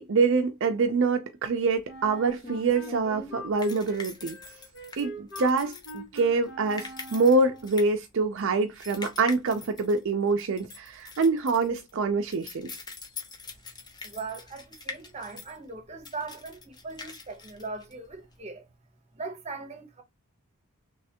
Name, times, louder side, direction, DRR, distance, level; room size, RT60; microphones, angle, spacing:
voice 1, 0.0-4.4 5.0-12.7, right 4 dB, 60° right, 0.5 m, -25 dB
sound 1, 1.7-18.4, left 4 dB, 20° left, 0.7 m, -44 dB
Wind instrument woodwind instrument, 1.9-7.8, right 1 dB, 55° left, 1.3 m, -43 dB
voice 2, 14.0-18.7 19.1-20.0, right 3 dB, 30° right, 0.8 m, -39 dB
3.2 x 3.1 x 2.8 m
head